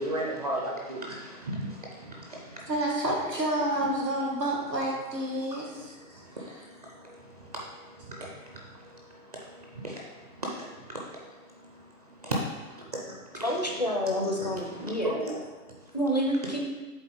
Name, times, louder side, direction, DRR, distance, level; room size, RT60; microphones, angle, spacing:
voice 1, 0.0-2.7 3.1-3.2 3.6-4.2 5.3-13.7 14.0-15.4 15.7-16.0, right 1 dB, 25° right, -2 dB, 0.6 m, -37 dB
voice 2, 2.7-6.2, right 1 dB, 90° right, -3 dB, 1.8 m, -29 dB
voice 3, 13.4-15.1 15.9-16.6, equal, 30° left, 1 dB, 0.4 m, -28 dB
7.8 x 3.6 x 3.8 m, 1.2 s
figure-of-eight pair, 125°, 48 cm